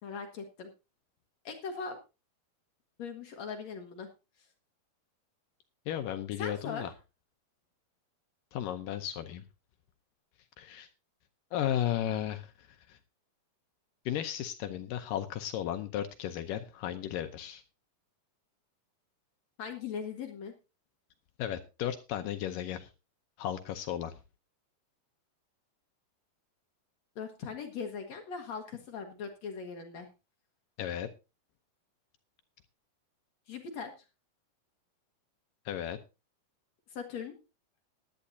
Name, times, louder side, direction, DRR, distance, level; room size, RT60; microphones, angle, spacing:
voice 1, 0.0-0.7 1.4-2.0 3.0-4.1 6.4-6.9 19.6-20.5 27.2-30.1 33.5-33.9 36.9-37.4, left 6 dB, 60° left, 4 dB, 2.1 m, -40 dB
voice 2, 5.9-6.9 8.5-9.4 10.6-10.9 11.5-13.0 14.1-17.6 21.4-22.9 23.4-24.1 30.8-31.1 35.7-36.0, left 11 dB, 75° left, 8 dB, 2.2 m, -34 dB
17.0 x 11.5 x 2.7 m, 0.28 s
omnidirectional pair, 4.4 m